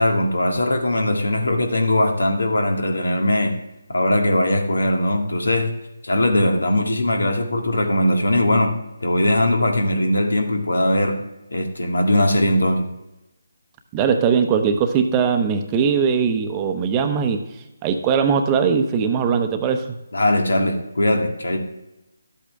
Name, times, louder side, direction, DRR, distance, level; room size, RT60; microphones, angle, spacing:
voice 1, 0.0-3.5 3.9-5.7 6.0-8.7 9.0-11.2 11.5-12.9 20.1-21.6, left 1 dB, 85° left, 3 dB, 1.9 m, -20 dB
voice 2, 13.9-17.4 17.8-20.0, right 6 dB, 20° right, 6 dB, 0.8 m, -20 dB
12.0 x 8.3 x 3.5 m, 0.95 s
figure-of-eight pair, 160°, 0 cm